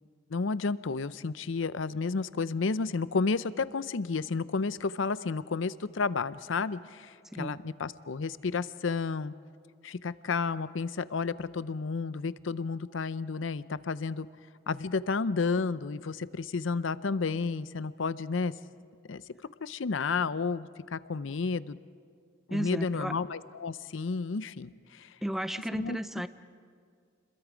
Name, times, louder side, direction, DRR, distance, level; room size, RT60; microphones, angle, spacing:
voice 1, 0.3-9.3 9.8-14.3 14.7-18.5 19.1-19.2 19.6-21.8 22.5-25.1 25.7-26.0, left 4 dB, 75° left, 15 dB, 0.6 m, -31 dB
voice 2, 7.3-7.6 22.5-23.1 25.2-26.3, equal, ahead, 12 dB, 0.5 m, -33 dB
30.0 x 22.0 x 5.1 m, 2.1 s
head